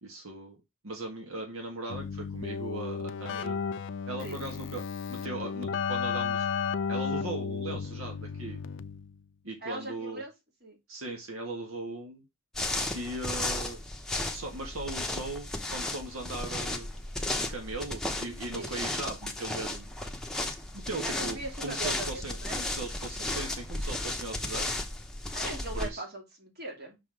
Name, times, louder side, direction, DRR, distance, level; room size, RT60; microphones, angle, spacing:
voice 1, 0.0-3.6 4.1-4.8 5.1-6.5 6.9-8.6 9.4-10.2 10.9-12.2 12.9-13.8 14.3-16.9 17.4-19.9 20.7-24.7 25.7-26.0, right 2 dB, 85° right, 2 dB, 1.5 m, -38 dB
Keyboard (musical), 1.9-9.2, left 6 dB, 60° left, 0.4 m, -33 dB
voice 2, 9.6-10.3 10.6-10.8 18.5-18.7 21.0-22.6 25.3-27.0, right 2 dB, 50° right, 1 dB, 2.3 m, -40 dB
sound 1, 12.5-25.9, left 2 dB, 5° left, 0.8 m, -34 dB
5.9 x 3.9 x 4.7 m, 0.22 s
head